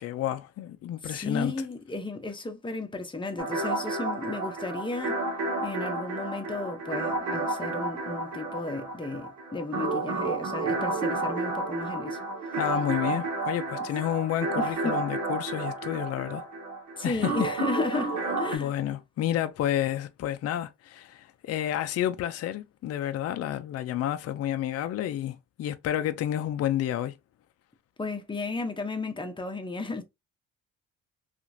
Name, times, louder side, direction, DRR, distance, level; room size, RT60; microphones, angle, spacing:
voice 1, 0.0-1.5 12.6-16.4 17.0-17.3 18.5-27.1, left 11 dB, 55° left, 0.4 m, -30 dB
voice 2, 1.0-5.2 5.6-12.2 14.6-14.9 17.0-18.7 28.0-30.0, left 3 dB, 15° left, 0.8 m, -34 dB
sound 1, 3.4-18.6, right 3 dB, 70° right, 1.0 m, -31 dB
2.9 x 2.5 x 2.6 m
cardioid pair, 90°, 30 cm